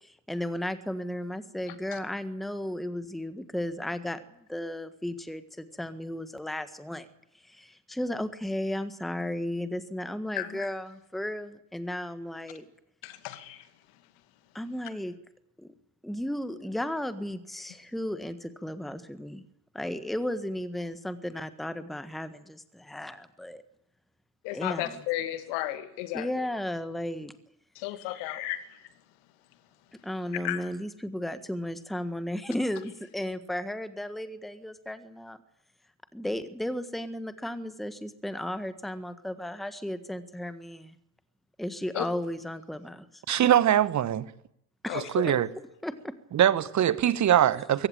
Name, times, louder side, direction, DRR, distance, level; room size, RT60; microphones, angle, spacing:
voice 1, 0.0-4.2 4.5-7.1 7.4-12.7 14.5-15.2 15.6-15.7 16.0-19.4 19.7-23.6 24.5-25.0 26.1-27.3 30.0-35.4 36.1-41.0 41.6-43.2 44.8-45.3 45.8-46.1, left 1 dB, ahead, 1.5 m, -34 dB
voice 2, 10.3-10.7 13.0-13.6 24.4-26.3 27.8-28.6 30.4-30.7 41.9-42.1 44.9-45.3, left 15 dB, 60° left, 2.3 m, -33 dB
voice 3, 43.3-44.3 44.9-45.5 46.3-47.9, right 11 dB, 35° right, 1.3 m, -22 dB
22.5 x 17.0 x 8.9 m
figure-of-eight pair, 55°, 48 cm